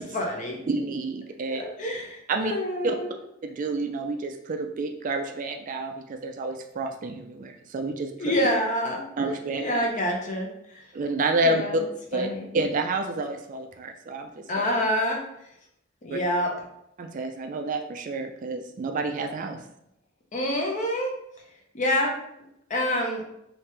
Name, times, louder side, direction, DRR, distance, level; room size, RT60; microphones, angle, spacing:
voice 1, 0.1-0.6 1.5-3.1 8.2-9.0 9.6-10.8 11.4-11.8 12.1-12.5 14.5-15.2 16.0-16.5 20.3-21.1 21.7-22.1 22.7-23.2, equal, 40° left, 1 dB, 0.7 m, -27 dB
voice 2, 0.7-1.6 2.3-2.5 2.8-3.0 3.4-8.1 9.2-9.7 10.9-11.8 12.1-12.3 12.5-14.4 16.1-16.2 17.0-19.6, right 2 dB, 40° right, 5 dB, 0.3 m, -29 dB
3.0 x 2.8 x 3.3 m, 0.78 s
head